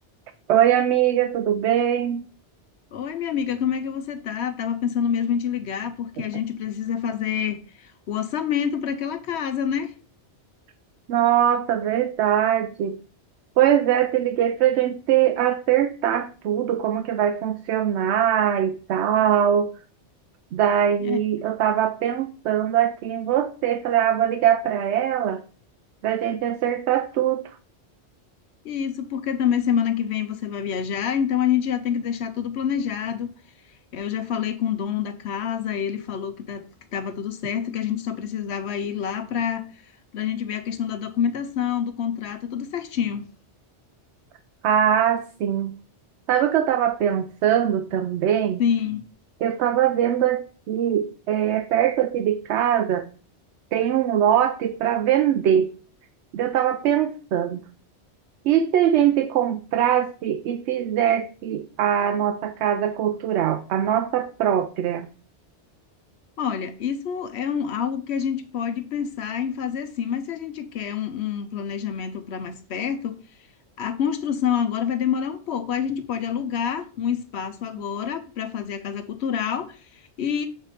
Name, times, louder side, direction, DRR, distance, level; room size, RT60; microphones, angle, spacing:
voice 1, 0.5-2.2 6.2-6.3 11.1-13.0 13.6-19.7 20.5-25.4 26.0-27.4 44.6-45.7 46.3-48.6 49.4-53.1 53.7-55.7 56.3-57.6 58.4-65.1, right 10 dB, 75° right, 0.8 m, -22 dB
voice 2, 2.9-9.9 21.0-21.5 28.6-33.3 33.9-43.3 48.6-49.1 66.4-73.2 73.8-80.5, left 8 dB, 70° left, 0.9 m, -27 dB
7.1 x 3.3 x 4.0 m
omnidirectional pair, 1.2 m